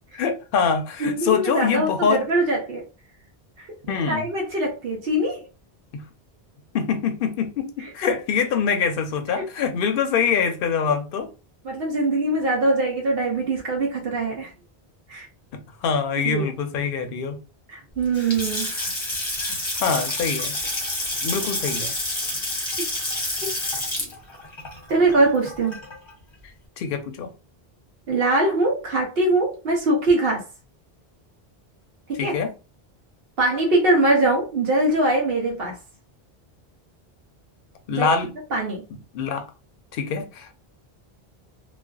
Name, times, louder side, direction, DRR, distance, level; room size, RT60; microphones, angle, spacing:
voice 1, 0.1-2.3 3.9-4.2 5.9-6.0 6.7-11.3 15.5-17.4 18.6-18.9 19.4-20.6 21.2-21.9 26.8-27.3 32.2-32.5 37.9-38.4 39.1-39.5 39.9-40.5, left 6 dB, 65° left, 0.7 m, -24 dB
voice 2, 1.0-2.8 4.1-5.4 9.4-9.5 11.6-14.5 15.1-15.3 16.2-16.4 17.7-18.7 24.9-25.8 28.1-30.4 32.1-32.4 33.4-35.8 37.9-38.1 38.5-38.8, right 2 dB, 70° right, 0.9 m, -22 dB
Water tap faucet / Sink (filling or washing) / Splash splatter, 18.0-26.1, left 1 dB, 30° left, 0.7 m, -29 dB
2.4 x 2.2 x 2.2 m
omnidirectional pair, 1.0 m